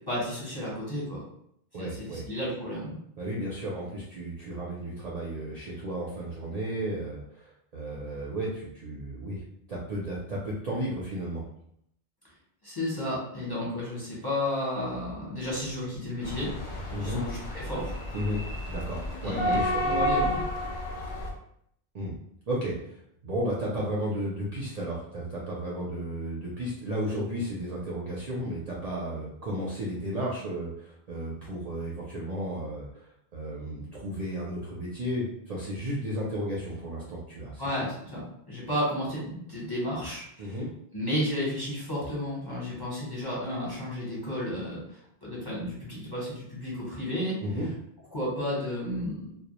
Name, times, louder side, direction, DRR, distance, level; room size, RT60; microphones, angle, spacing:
voice 1, 0.1-1.2 1.8-3.0 12.6-16.5 17.0-18.1 19.2-20.5 37.6-40.6 40.9-44.8 45.2-47.4 48.1-49.4, left 1 dB, 25° left, -7 dB, 0.8 m, -32 dB
voice 2, 1.7-2.3 3.2-9.4 9.7-11.4 16.9-17.2 18.1-18.4 18.7-20.0 21.9-22.1 22.5-37.6 40.4-40.7 47.4-47.7, right 1 dB, 50° right, -5 dB, 0.5 m, -33 dB
sound 1, 16.2-21.3, equal, 55° left, 0.6 m, -31 dB
2.2 x 2.0 x 2.9 m, 0.72 s
omnidirectional pair, 1.0 m